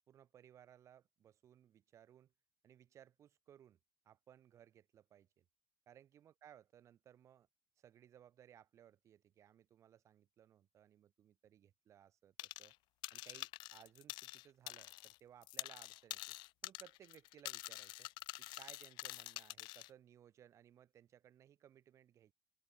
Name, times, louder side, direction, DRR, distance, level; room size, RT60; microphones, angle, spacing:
voice 1, 0.1-2.3 2.6-3.8 4.0-5.5 5.9-7.5 7.8-12.7 13.1-16.4 16.6-18.1 18.4-22.3, right 10 dB, 40° right, 2.7 m, -63 dB
sound 1, 12.4-12.8 13.0-15.2 15.4-19.9, left 21 dB, 75° left, 0.4 m, -47 dB
open air
cardioid pair, 175°, 8 cm